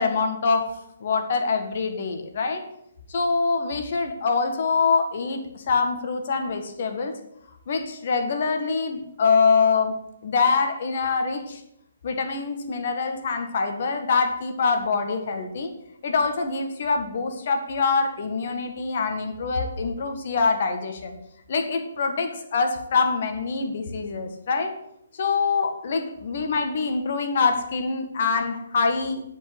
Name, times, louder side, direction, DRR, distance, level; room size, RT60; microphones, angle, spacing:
voice 1, 0.0-2.7 3.1-7.2 7.7-10.0 10.2-11.6 12.0-15.7 16.0-21.2 21.5-24.8 25.1-29.2, left 4 dB, 55° left, 5 dB, 1.8 m, -24 dB
10.5 x 5.5 x 7.9 m, 0.77 s
figure-of-eight pair, 140°, 0 cm